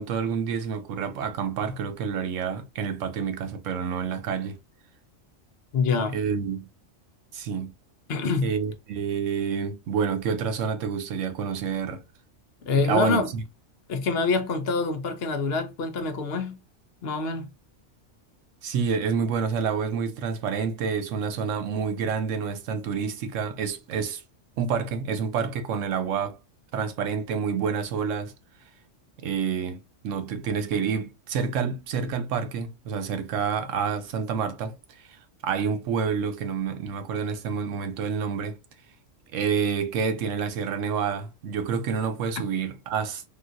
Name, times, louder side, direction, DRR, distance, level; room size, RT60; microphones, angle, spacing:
voice 1, 0.0-4.6 6.1-6.7 7.3-7.7 8.4-12.0 12.8-13.4 18.6-24.2 24.6-26.4 26.7-28.3 29.2-34.7 35.4-38.6 39.3-43.2, right 6 dB, 85° right, 1.0 m, -28 dB
voice 2, 5.7-6.2 8.1-8.5 12.7-13.3 13.9-16.6 17.0-17.5, left 4 dB, 60° left, 0.8 m, -26 dB
3.7 x 2.4 x 2.5 m
omnidirectional pair, 1.3 m